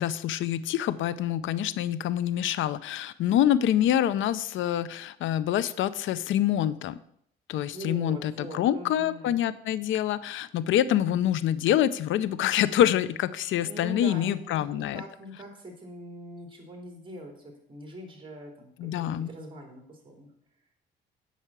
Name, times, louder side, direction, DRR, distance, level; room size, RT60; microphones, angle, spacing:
voice 1, 0.0-7.0 7.5-15.0 18.8-19.3, left 11 dB, 75° left, 16 dB, 0.5 m, -26 dB
voice 2, 7.7-9.4 13.6-20.3, equal, 25° right, 1 dB, 3.3 m, -42 dB
8.3 x 5.6 x 7.4 m, 0.70 s
cardioid pair, 90°, 20 cm